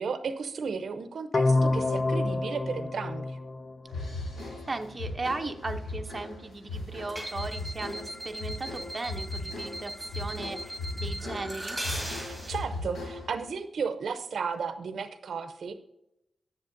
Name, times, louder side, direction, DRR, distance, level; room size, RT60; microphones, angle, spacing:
voice 1, 0.0-3.4 12.2-15.7, right 5 dB, 70° right, 9 dB, 0.6 m, -34 dB
sound 1, 1.3-4.3, left 2 dB, 30° left, 0.4 m, -27 dB
sound 2, 3.9-13.4, left 2 dB, 90° left, 2.5 m, -38 dB
voice 2, 4.7-11.8, right 3 dB, 25° right, 4 dB, 0.6 m, -37 dB
sound 3, 7.1-12.7, right 1 dB, 5° left, 2.2 m, -39 dB
10.0 x 7.2 x 2.6 m, 0.83 s
wide cardioid pair, 155°, 0 cm